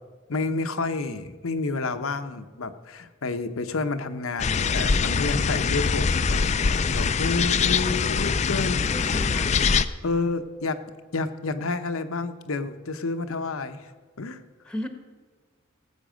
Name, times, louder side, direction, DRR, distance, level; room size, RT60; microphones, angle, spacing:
voice 1, 0.3-9.2 10.0-10.8 11.1-13.9 14.2-14.4, left 3 dB, 75° left, 10 dB, 0.9 m, -30 dB
sound 1, 4.4-9.9, left 5 dB, 30° left, 0.4 m, -23 dB
voice 2, 8.7-9.6 10.1-10.3 14.6-14.9, equal, 5° left, 6 dB, 1.0 m, -37 dB
18.0 x 8.3 x 5.1 m, 1.5 s
head